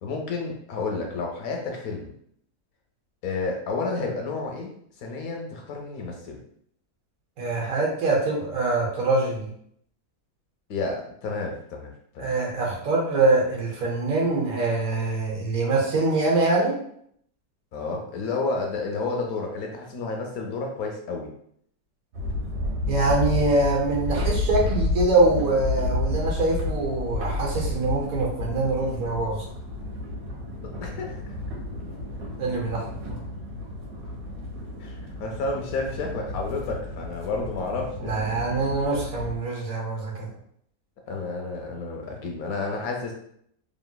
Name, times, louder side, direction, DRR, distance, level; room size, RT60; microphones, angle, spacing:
voice 1, 0.0-2.1 3.2-4.7 5.0-6.4 10.7-12.3 17.7-21.3 30.8-31.2 34.8-34.9 35.2-38.2 41.1-43.1, left 3 dB, 70° left, 1 dB, 1.0 m, -31 dB
voice 2, 7.4-9.5 12.2-16.8 22.9-29.4 32.4-32.8 33.1-33.3 38.0-40.3, right 2 dB, 65° right, -2 dB, 1.1 m, -24 dB
sound 1, 22.1-39.4, left 2 dB, 80° right, 1.3 m, -31 dB
3.0 x 2.7 x 2.2 m, 0.67 s
omnidirectional pair, 1.7 m